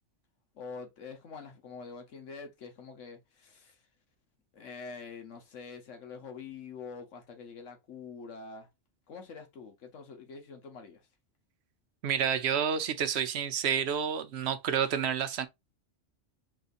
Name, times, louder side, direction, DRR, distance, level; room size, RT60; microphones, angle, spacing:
voice 1, 0.6-3.7 4.5-8.7 9.1-11.0, left 5 dB, 85° left, 1.4 m, -45 dB
voice 2, 12.0-15.5, right 8 dB, 65° right, 0.9 m, -29 dB
5.5 x 2.7 x 2.5 m
omnidirectional pair, 1.2 m